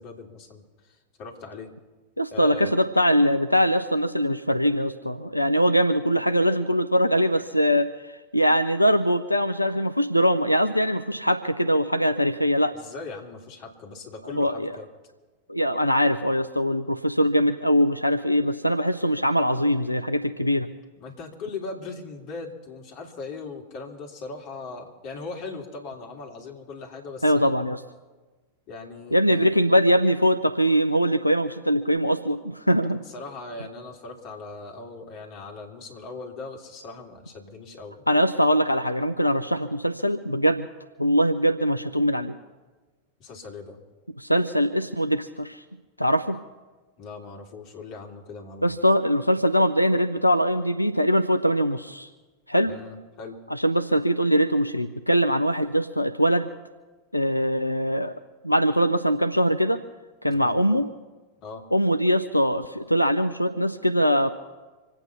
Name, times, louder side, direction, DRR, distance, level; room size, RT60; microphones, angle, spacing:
voice 1, 0.0-1.7 2.3-2.8 12.7-14.9 21.0-27.5 28.7-29.5 33.0-38.1 43.2-43.8 47.0-48.7 52.6-53.4 60.3-60.6 61.4-61.6, left 3 dB, 40° left, 1 dB, 3.1 m, -39 dB
voice 2, 2.2-12.7 14.3-14.7 15.5-20.7 27.2-27.8 29.1-33.0 38.1-40.7 41.0-42.4 44.2-45.6 46.0-46.4 48.6-52.1 52.5-52.7 53.5-56.5 57.1-58.1 58.4-59.8 60.2-60.9 61.7-64.3, equal, 90° left, 10 dB, 0.6 m, -22 dB
26.0 x 9.0 x 5.8 m, 1.3 s
figure-of-eight pair, 90°, 0 cm